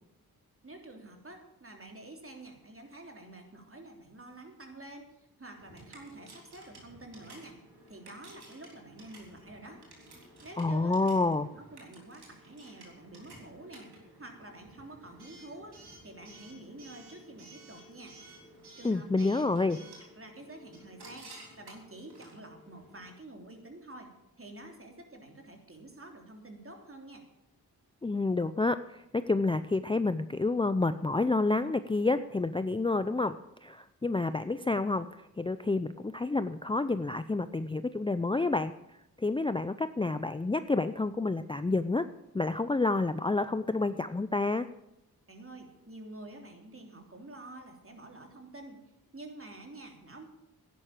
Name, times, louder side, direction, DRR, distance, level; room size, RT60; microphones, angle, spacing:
voice 1, 0.6-9.8 10.4-18.2 18.8-19.5 19.8-24.1 24.4-27.2 45.3-48.8 49.1-50.3, right 2 dB, 35° right, 3 dB, 3.3 m, -48 dB
Coin (dropping) / Alarm, 5.6-23.1, right 1 dB, 80° right, 3.6 m, -53 dB
voice 2, 10.6-11.5 18.8-19.8 28.0-35.1 35.4-38.7 39.2-42.1 42.3-44.7, left 3 dB, 15° left, 12 dB, 0.5 m, -29 dB
11.5 x 10.0 x 7.3 m, 0.88 s
cardioid pair, 50°, 38 cm